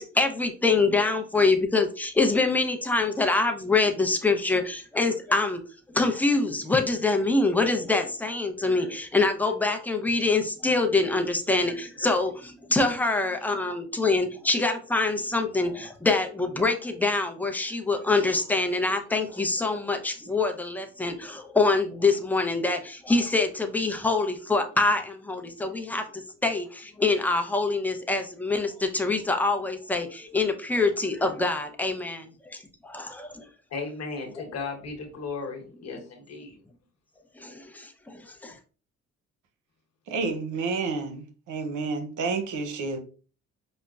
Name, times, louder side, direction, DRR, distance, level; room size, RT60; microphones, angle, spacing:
voice 1, 0.0-5.6 5.9-33.5 37.4-38.6, left 3 dB, 5° left, 4 dB, 0.6 m, -25 dB
voice 2, 33.7-36.6, left 4 dB, 60° left, 4 dB, 1.1 m, -36 dB
voice 3, 40.1-43.0, right 4 dB, 80° right, 6 dB, 0.7 m, -30 dB
5.1 x 2.1 x 2.3 m, 0.38 s
cardioid pair, 90°, 30 cm